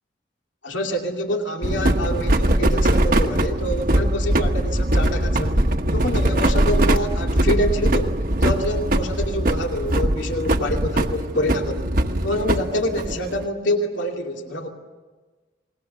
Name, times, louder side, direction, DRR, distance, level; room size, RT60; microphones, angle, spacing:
voice 1, 0.6-5.6 5.9-11.9 12.2-14.7, left 1 dB, 80° left, 2 dB, 2.6 m, -26 dB
sound 1, 1.6-13.5, right 1 dB, 50° right, 1.2 m, -21 dB
29.5 x 20.5 x 6.9 m, 1.3 s
head